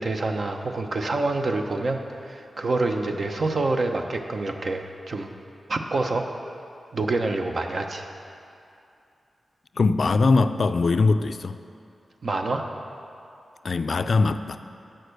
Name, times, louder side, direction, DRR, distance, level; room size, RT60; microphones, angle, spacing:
voice 1, 0.0-5.3 5.7-6.2 6.9-8.1 12.2-12.6, right 2 dB, 55° right, 4 dB, 0.7 m, -27 dB
voice 2, 9.8-11.6 13.6-14.6, left 3 dB, 60° left, 10 dB, 0.3 m, -21 dB
8.9 x 6.6 x 6.6 m, 2.6 s
cardioid pair, 75°, 0 cm